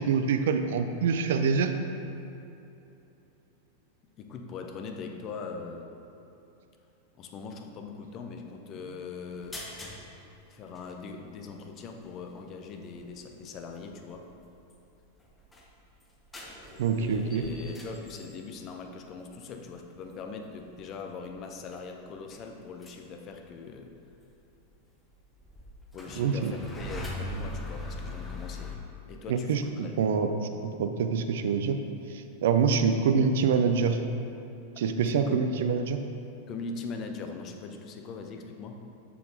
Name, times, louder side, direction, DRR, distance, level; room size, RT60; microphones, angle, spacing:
voice 1, 0.0-1.7 16.8-17.5 26.2-26.5 29.3-31.8 32.1-34.0 34.8-36.0, right 5 dB, 55° right, 7 dB, 0.5 m, -26 dB
voice 2, 4.2-5.9 7.2-9.7 10.5-14.3 17.0-24.0 25.9-28.8 29.1-29.9 35.1-35.4 36.5-38.8, left 4 dB, 35° left, 4 dB, 0.7 m, -41 dB
sound 1, 9.3-10.0 10.4-10.5 10.8-10.9 12.4-12.5 13.0-13.3 13.9-14.3 14.7-14.8 15.0-18.6 19.1-19.3 20.2-20.3 20.5-20.7 21.2-21.4 21.7-21.9 22.2-23.1 23.3-23.5 24.6-24.7 25.0-28.8, left 1 dB, 15° left, 1.0 m, -41 dB
6.8 x 6.8 x 3.7 m, 2.9 s
figure-of-eight pair, 90°, 0 cm